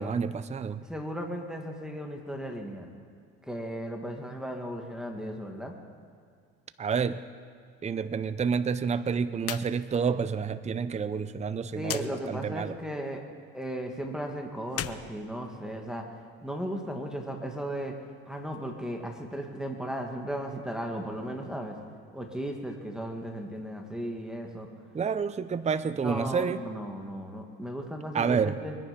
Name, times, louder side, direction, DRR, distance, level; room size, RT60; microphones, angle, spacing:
voice 1, 0.0-0.8 6.8-7.2 7.8-12.8 24.9-26.6 28.1-28.6, right 6 dB, 20° right, 13 dB, 0.6 m, -29 dB
voice 2, 0.9-2.9 3.4-5.8 11.7-13.2 13.5-18.0 18.3-21.8 22.1-24.7 26.0-28.8, equal, ahead, 1 dB, 2.2 m, -36 dB
sound 1, 9.4-9.7 10.0-10.1 11.8-12.1 14.6-16.0, left 11 dB, 45° left, 0.7 m, -37 dB
23.0 x 10.0 x 5.4 m, 2.3 s
supercardioid pair, 90°, 33 cm